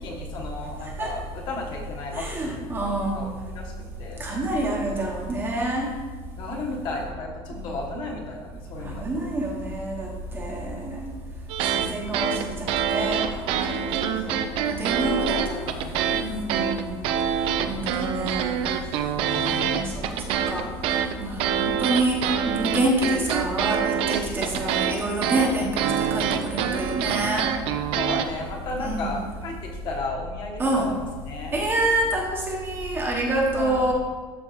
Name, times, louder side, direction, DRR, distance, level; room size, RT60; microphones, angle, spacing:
voice 1, 0.0-2.6 3.1-3.7 4.0-4.2 6.4-9.2 13.8-14.7 15.2-15.9 17.4-18.1 19.3-19.8 27.9-30.9 31.3-31.6 33.5-33.8, left 2 dB, 40° left, -1 dB, 1.3 m, -35 dB
voice 2, 2.1-3.3 4.2-5.9 7.5-7.7 8.8-11.1 11.7-12.5 12.8-14.4 14.7-15.7 16.1-17.0 17.7-18.6 19.3-27.5 28.8-29.1 30.6-30.9 31.5-33.9, right 1 dB, 20° right, -1 dB, 0.9 m, -27 dB
sound 1, 11.5-11.9 12.1-16.2 16.5-28.2, right 8 dB, 55° right, 0.5 m, -25 dB
13.0 x 4.4 x 3.1 m, 1.4 s
cardioid pair, 170°, 12 cm